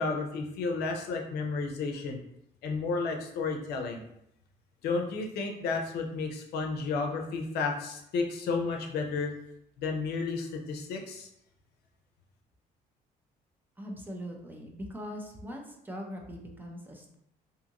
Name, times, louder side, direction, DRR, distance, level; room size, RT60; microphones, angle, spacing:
voice 1, 0.0-2.2 2.6-4.0 4.8-9.3 9.8-11.3, left 4 dB, 70° left, 2 dB, 0.6 m, -32 dB
voice 2, 13.8-17.2, equal, 10° right, 1 dB, 0.5 m, -41 dB
2.7 x 2.5 x 2.9 m, 0.76 s
cardioid pair, 110°, 17 cm